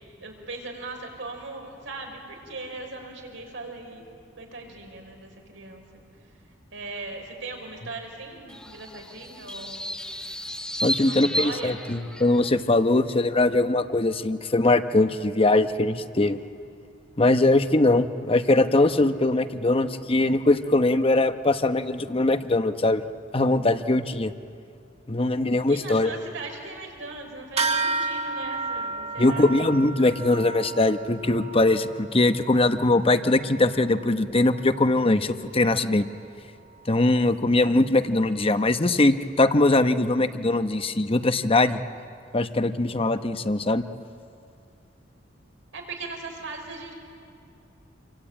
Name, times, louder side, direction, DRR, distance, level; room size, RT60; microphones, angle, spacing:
voice 1, 0.0-4.1 4.4-5.8 6.7-9.9 10.9-11.8 25.7-29.5 45.7-46.9, right 3 dB, 80° right, 2 dB, 5.2 m, -39 dB
sound 1, 8.5-12.5, equal, 5° left, 1.0 m, -33 dB
voice 2, 10.8-16.4 17.2-23.0 23.3-24.3 25.1-26.1 29.2-36.0 36.9-41.8 42.3-43.8, left 2 dB, 30° left, 10 dB, 0.9 m, -21 dB
sound 2, 27.6-37.4, right 3 dB, 35° right, 1.9 m, -34 dB
27.5 x 24.0 x 8.9 m, 2.4 s
head